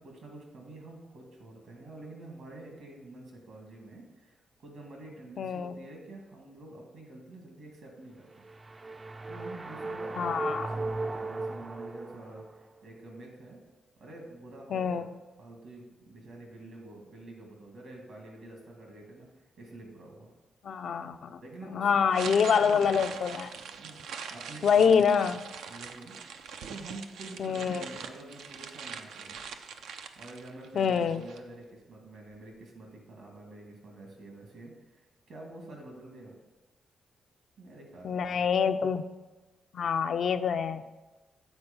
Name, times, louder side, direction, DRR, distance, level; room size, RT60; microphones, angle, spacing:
voice 1, 0.0-8.4 9.3-13.6 14.0-20.3 21.4-23.0 23.8-25.1 25.7-26.4 26.7-29.4 30.2-36.3 37.6-38.5, right 2 dB, 75° right, 0 dB, 2.3 m, -47 dB
voice 2, 5.4-5.7 10.2-10.7 14.7-15.0 20.6-21.4 21.7-23.5 24.6-25.4 27.4-27.9 30.8-31.2 38.0-39.1 39.7-40.8, left 6 dB, 65° left, 10 dB, 0.4 m, -26 dB
sound 1, 8.3-12.6, right 2 dB, 30° right, 0.4 m, -37 dB
sound 2, 22.1-31.4, right 6 dB, 90° right, 0.5 m, -43 dB
8.1 x 4.4 x 5.5 m, 1.2 s
cardioid pair, 80°, 0 cm